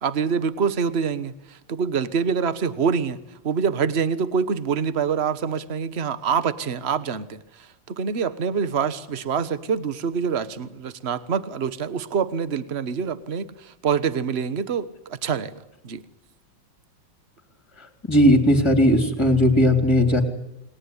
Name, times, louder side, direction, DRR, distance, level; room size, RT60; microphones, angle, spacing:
voice 1, 0.0-3.2 3.4-15.5 15.8-16.0, right 6 dB, 35° right, 13 dB, 1.3 m, -25 dB
voice 2, 18.1-20.2, equal, 15° left, 6 dB, 3.4 m, -17 dB
29.0 x 21.0 x 9.9 m, 0.87 s
omnidirectional pair, 2.1 m